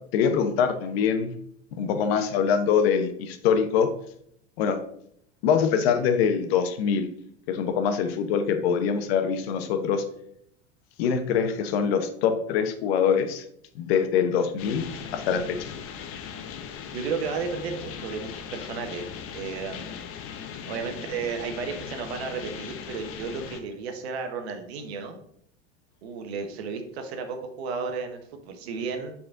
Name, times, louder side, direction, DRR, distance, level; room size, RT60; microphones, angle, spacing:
voice 1, 0.1-1.3 1.8-3.9 4.6-4.8 5.4-7.1 7.5-10.0 11.0-13.4 13.7-15.7, left 7 dB, 70° left, 8 dB, 1.0 m, -24 dB
sound 1, 14.6-23.6, left 7 dB, 45° left, 0.9 m, -39 dB
voice 2, 16.9-19.1 19.3-20.1 20.7-25.2 26.0-29.1, right 5 dB, 75° right, 6 dB, 1.2 m, -33 dB
6.6 x 4.3 x 3.7 m, 0.71 s
hypercardioid pair, 95°, 32 cm